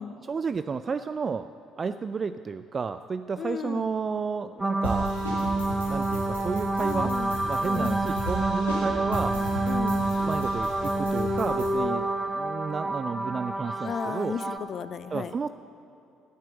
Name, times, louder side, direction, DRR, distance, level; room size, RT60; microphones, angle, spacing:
voice 1, 0.2-1.5 1.8-5.1 5.9-7.1 7.5-9.4 10.2-14.4 15.1-15.5, right 5 dB, 35° right, 11 dB, 0.3 m, -31 dB
voice 2, 3.4-3.9 6.8-7.3 7.6-8.1 9.7-10.1 13.8-15.3, left 7 dB, 45° left, 14 dB, 0.5 m, -35 dB
sound 1, 4.6-14.6, right 2 dB, 10° right, 0.9 m, -28 dB
sound 2, 4.8-11.7, left 1 dB, 85° left, 2.2 m, -35 dB
15.0 x 7.5 x 7.9 m, 2.7 s
figure-of-eight pair, 50°, 0 cm